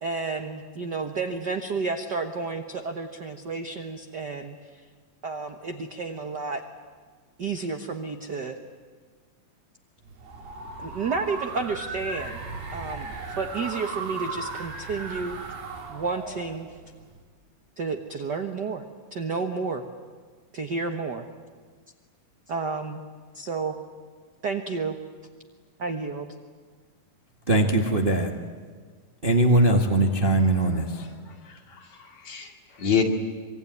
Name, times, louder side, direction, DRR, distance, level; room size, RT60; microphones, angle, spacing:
voice 1, 0.0-4.8 5.2-6.6 7.4-8.6 10.8-12.4 12.7-15.4 15.9-16.7 17.8-18.8 19.1-19.9 20.5-21.3 22.5-23.0 23.3-23.8 24.4-25.0 25.8-26.3, right 4 dB, 60° right, 5 dB, 1.1 m, -31 dB
sound 1, 10.0-17.2, right 4 dB, 85° right, 4.7 m, -37 dB
voice 2, 27.5-28.3 29.2-31.0, right 2 dB, 25° right, 2 dB, 1.3 m, -21 dB
voice 3, 31.3-33.0, left 7 dB, 55° left, 2 dB, 3.7 m, -28 dB
25.5 x 24.0 x 9.6 m, 1.5 s
omnidirectional pair, 3.8 m